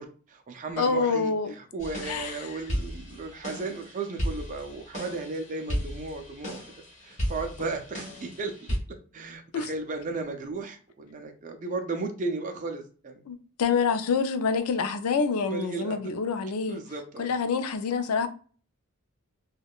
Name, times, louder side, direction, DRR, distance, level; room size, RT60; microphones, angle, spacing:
voice 1, 0.0-6.6 7.0-8.8 9.1-13.2 15.5-16.0 16.7-17.3, right 3 dB, 35° right, 0.4 m, -35 dB
voice 2, 0.8-1.5 2.0-2.3 9.5-9.7 13.3-16.8 17.2-18.3, left 5 dB, 85° left, 0.4 m, -27 dB
sound 1, 1.8-8.8, equal, 35° left, 1.2 m, -35 dB
3.5 x 2.2 x 2.3 m
head